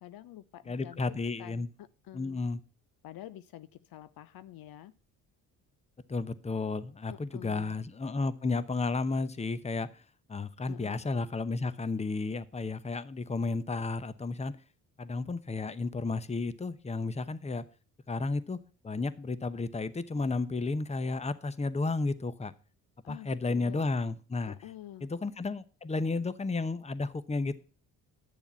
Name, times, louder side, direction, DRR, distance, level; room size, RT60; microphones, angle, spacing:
voice 1, 0.0-2.4 3.0-4.9 7.1-7.7 10.7-11.0 23.0-23.8 24.5-25.1, left 13 dB, 60° left, 15 dB, 0.6 m, -48 dB
voice 2, 0.7-1.7 2.1-2.6 6.1-10.0 10.3-14.5 15.0-17.6 18.1-18.6 18.8-22.5 23.1-24.6 25.0-27.6, left 3 dB, 15° left, 15 dB, 0.8 m, -32 dB
10.0 x 7.0 x 5.4 m, 0.37 s
hypercardioid pair, 55°, 41 cm